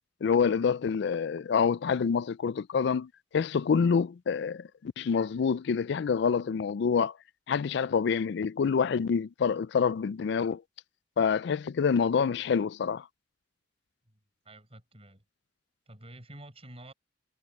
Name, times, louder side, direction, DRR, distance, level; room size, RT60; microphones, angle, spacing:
voice 1, 0.2-7.1 7.5-10.6 11.2-13.1, left 6 dB, 65° left, 0.4 m, -27 dB
voice 2, 14.5-15.2 15.9-16.9, right 1 dB, 35° right, 6.8 m, -49 dB
head